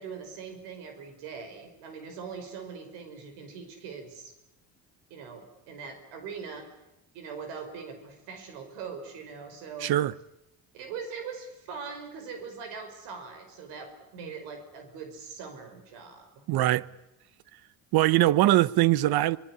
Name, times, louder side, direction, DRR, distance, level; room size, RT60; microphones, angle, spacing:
voice 1, 0.0-4.3 5.1-6.7 7.1-9.9 10.7-16.4, right 5 dB, 90° right, 5.4 m, -41 dB
voice 2, 9.8-10.1 16.5-16.9 17.9-19.4, right 15 dB, 65° right, 1.0 m, -22 dB
25.5 x 20.0 x 9.9 m
cardioid pair, 100°, 40 cm